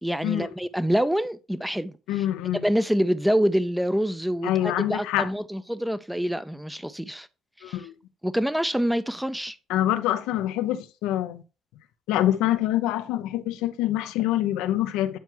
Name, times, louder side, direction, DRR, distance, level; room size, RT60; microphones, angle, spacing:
voice 1, 0.0-2.3 2.6-7.3 7.7-7.8 8.2-9.6, equal, 5° right, 0.5 m, -26 dB
voice 2, 2.1-2.7 4.4-5.3 7.6-7.9 9.7-11.4 12.1-15.2, left 13 dB, 90° left, 0.6 m, -25 dB
9.4 x 4.5 x 3.0 m
cardioid pair, 90°, 0 cm